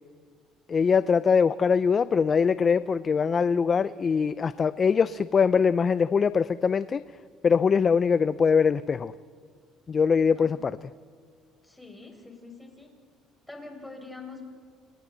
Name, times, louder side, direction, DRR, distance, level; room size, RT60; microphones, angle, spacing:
voice 1, 0.7-7.0 7.4-9.1 9.9-10.8, left 6 dB, 35° left, 15 dB, 0.5 m, -22 dB
voice 2, 11.6-12.9 13.5-14.5, left 3 dB, 5° left, 1 dB, 5.7 m, -44 dB
29.5 x 29.0 x 4.0 m, 2.1 s
cardioid pair, 105°, 0 cm